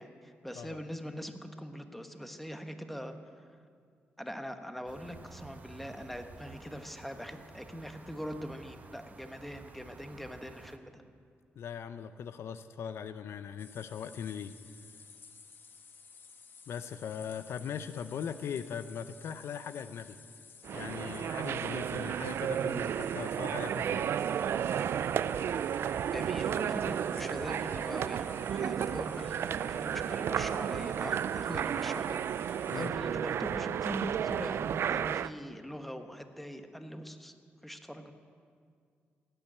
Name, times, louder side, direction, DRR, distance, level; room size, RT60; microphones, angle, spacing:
voice 1, 0.0-3.3 4.2-11.0 26.1-37.3 37.6-38.1, equal, 5° left, 7 dB, 1.2 m, -42 dB
sound 1, 4.9-10.8, right 4 dB, 40° right, 1.0 m, -52 dB
voice 2, 11.6-14.5 16.7-20.2 20.7-24.2 32.7-32.9, left 7 dB, 75° left, 12 dB, 0.6 m, -40 dB
sound 2, 13.6-32.9, left 5 dB, 55° left, 1.1 m, -54 dB
sound 3, 20.6-35.3, right 9 dB, 65° right, 0.3 m, -33 dB
16.5 x 9.1 x 8.5 m, 2.2 s
cardioid pair, 85°, 4 cm